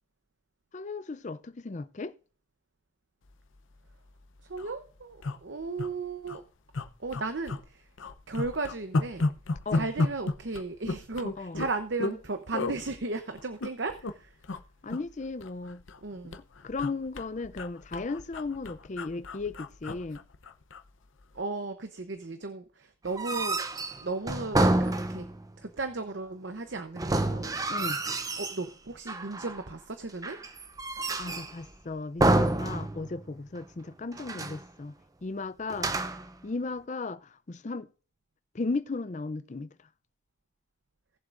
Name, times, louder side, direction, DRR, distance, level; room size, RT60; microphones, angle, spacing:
voice 1, 0.7-2.1 9.7-9.9 11.4-11.6 14.8-15.8 16.6-20.2 27.7-28.0 31.2-34.9 35.2-36.1 36.4-37.9 38.5-39.9, left 3 dB, 35° left, 0.5 m, -36 dB
sound 1, 3.8-3.9 4.2-4.3 4.5-4.7 5.2-5.9 6.2-6.4 6.7-7.7 8.0-12.2 12.5-12.8 13.4-14.1 14.4-14.6 14.9-16.0 16.3-20.9 21.2-21.4, left 2 dB, 75° left, 0.7 m, -33 dB
voice 2, 4.4-6.4 7.0-7.9 8.3-9.3 9.7-14.4 16.0-16.4 21.3-23.6 24.0-25.3 25.6-27.6 28.4-30.4, right 3 dB, 60° right, 0.8 m, -35 dB
sound 2, 23.1-25.5 27.0-28.6 29.1-29.7 30.2-31.6 32.2-33.3 33.6-33.7 34.1-34.7 35.7-36.3, right 2 dB, 15° right, 0.6 m, -29 dB
19.0 x 7.3 x 2.6 m
head